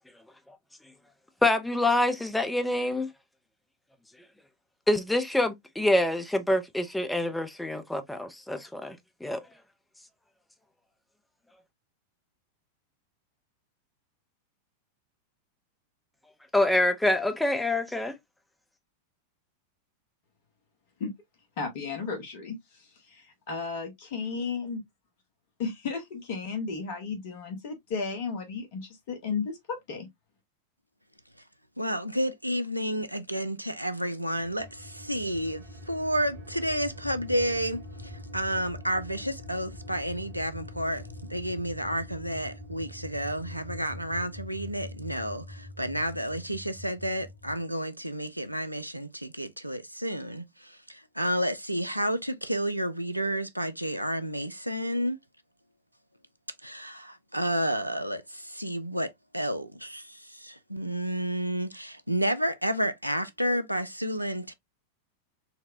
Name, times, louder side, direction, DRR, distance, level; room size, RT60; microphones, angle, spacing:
voice 1, 1.4-3.1 4.9-9.4 16.5-18.2, left 1 dB, 5° left, 0.5 m, -26 dB
voice 2, 21.6-24.8 25.6-30.1, left 5 dB, 50° left, 0.9 m, -34 dB
voice 3, 31.8-55.2 56.6-64.5, equal, 90° right, 0.4 m, -31 dB
sound 1, 34.4-47.6, left 1 dB, 55° right, 1.2 m, -44 dB
4.1 x 2.1 x 2.4 m
figure-of-eight pair, 90°, 0 cm